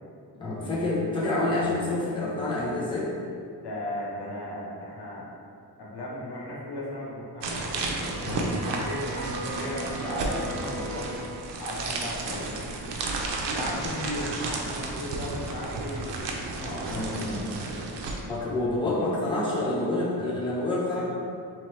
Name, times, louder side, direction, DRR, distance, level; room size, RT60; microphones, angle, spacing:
voice 1, 0.3-3.1 8.2-8.5 16.7-17.5 18.3-21.0, left 2 dB, 10° left, -7 dB, 0.7 m, -28 dB
voice 2, 3.6-5.3 5.8-7.7 8.7-11.1 11.6-12.7 13.4-16.9, left 1 dB, 70° left, -6 dB, 1.1 m, -36 dB
sound 1, 7.4-18.2, right 2 dB, 85° right, 0.6 m, -32 dB
Bowed string instrument, 7.9-11.6, right 2 dB, 5° right, 1.1 m, -40 dB
4.2 x 3.1 x 3.1 m, 2.4 s
wide cardioid pair, 125°, 42 cm